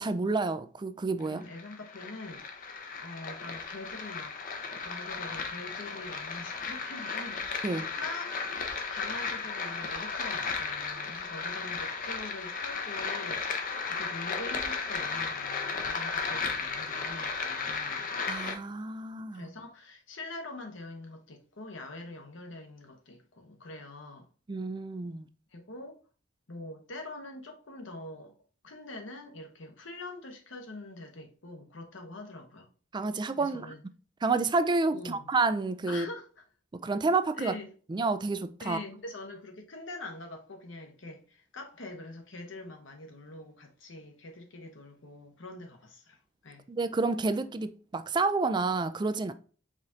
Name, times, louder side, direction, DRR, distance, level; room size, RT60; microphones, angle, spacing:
voice 1, 0.0-1.4 7.6-7.9 18.3-19.5 24.5-25.3 32.9-33.7 34.2-36.1 36.7-37.5 37.9-38.8 46.7-49.3, right 3 dB, 25° right, 0.4 m, -29 dB
voice 2, 1.2-4.4 4.8-8.4 8.9-18.1 19.3-24.3 25.5-26.0 26.5-28.3 28.6-32.7 33.3-33.8 34.9-35.3 35.9-36.4 37.3-37.7 38.6-46.6, left 2 dB, 70° left, 1.1 m, -44 dB
sound 1, 1.2-18.6, left 5 dB, 45° left, 0.7 m, -35 dB
5.0 x 3.6 x 2.7 m
head